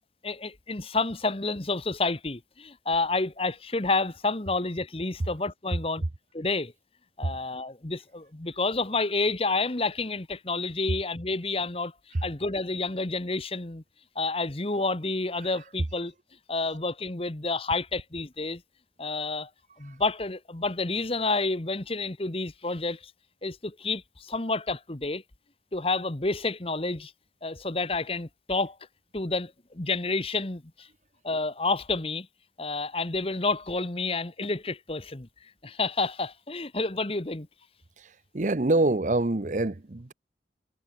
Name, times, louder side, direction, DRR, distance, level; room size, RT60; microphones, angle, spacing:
voice 1, 0.2-6.0 6.3-6.7 7.2-11.9 12.2-13.8 14.1-16.1 16.5-18.6 19.0-19.5 19.8-23.1 23.4-25.2 25.7-27.1 27.4-28.8 29.1-30.9 31.2-32.3 32.6-35.3 35.6-37.5, left 3 dB, 30° left, 1.2 m, -29 dB
voice 2, 38.3-40.1, right 2 dB, 45° right, 0.8 m, -25 dB
head